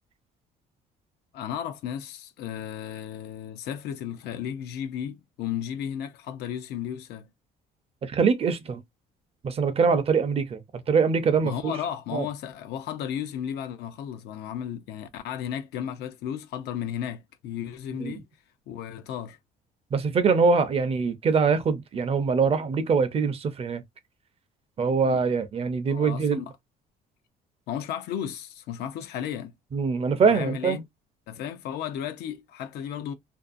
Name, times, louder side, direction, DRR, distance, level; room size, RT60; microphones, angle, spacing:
voice 1, 1.3-7.3 11.4-18.3 18.7-19.4 25.0-25.2 25.9-26.5 27.7-29.5 30.2-30.8 31.3-33.1, left 9 dB, 75° left, 0.5 m, -34 dB
voice 2, 8.0-8.8 9.4-10.6 10.9-11.7 12.1-12.3 18.0-18.2 19.9-23.8 24.8-26.4 29.7-30.8, right 5 dB, 35° right, 0.5 m, -23 dB
2.6 x 2.2 x 2.4 m
cardioid pair, 110°, 17 cm